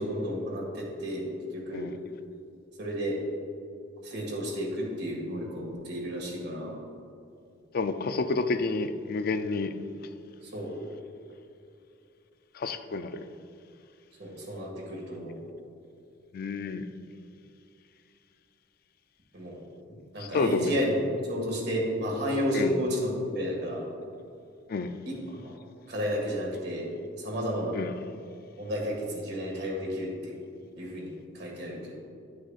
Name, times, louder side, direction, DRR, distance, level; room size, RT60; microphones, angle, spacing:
voice 1, 0.0-1.9 2.8-3.2 4.0-6.8 10.4-10.7 14.2-15.4 19.3-19.6 20.1-20.9 21.3-23.8 25.1-25.5 25.9-26.9 27.2-27.8 28.6-30.4 30.8-32.0, equal, 65° right, 1.8 m, -32 dB
voice 2, 7.7-9.7 12.6-13.2 16.3-16.9 20.2-20.8 22.5-22.7 24.7-24.9 27.7-27.9, left 3 dB, 55° left, 0.4 m, -29 dB
11.5 x 6.3 x 2.4 m
head